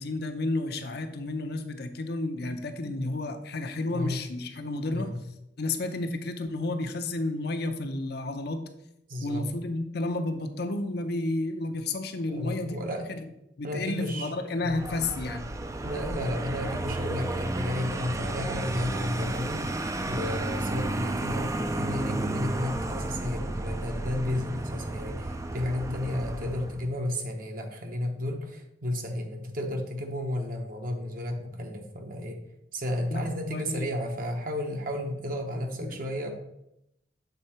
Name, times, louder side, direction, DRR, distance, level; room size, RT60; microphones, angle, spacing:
voice 1, 0.0-5.1 5.6-8.6 9.2-12.8 13.1-13.2 13.6-15.5 33.1-33.8 35.8-36.0, left 2 dB, 60° left, 6 dB, 0.7 m, -31 dB
voice 2, 3.9-4.2 4.9-5.2 9.1-9.4 12.3-13.1 13.6-14.3 14.6-14.8 15.8-32.4 32.7-36.3, left 1 dB, 50° right, 4 dB, 1.0 m, -33 dB
Vehicle, 14.6-26.9, right 2 dB, 20° right, 0.4 m, -32 dB
6.9 x 3.8 x 4.4 m, 0.83 s
head